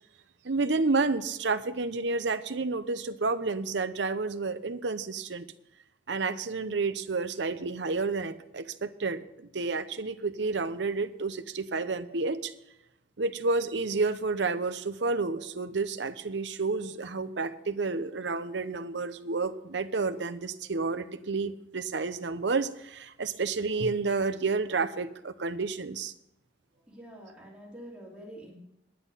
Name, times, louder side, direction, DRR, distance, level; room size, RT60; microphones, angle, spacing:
voice 1, 0.4-5.5 6.1-12.5 13.2-26.1, right 3 dB, 65° right, 11 dB, 0.7 m, -30 dB
voice 2, 26.8-28.6, right 1 dB, 5° right, -5 dB, 3.3 m, -46 dB
10.0 x 10.0 x 5.6 m, 0.85 s
head